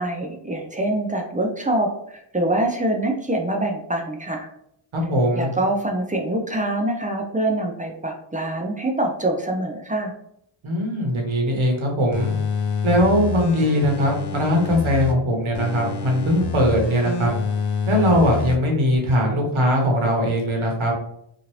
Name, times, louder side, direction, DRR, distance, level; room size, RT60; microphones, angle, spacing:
voice 1, 0.0-4.5 5.4-10.1, right 1 dB, 20° right, 2 dB, 0.3 m, -25 dB
voice 2, 4.9-5.5 10.6-12.3 12.8-17.3 17.9-20.9, equal, 70° right, 0 dB, 1.0 m, -20 dB
sound 1, 12.1-15.1 15.5-18.6 19.0-19.1, left 5 dB, 55° left, 0.5 m, -27 dB
2.9 x 2.5 x 3.0 m, 0.75 s
wide cardioid pair, 155°, 49 cm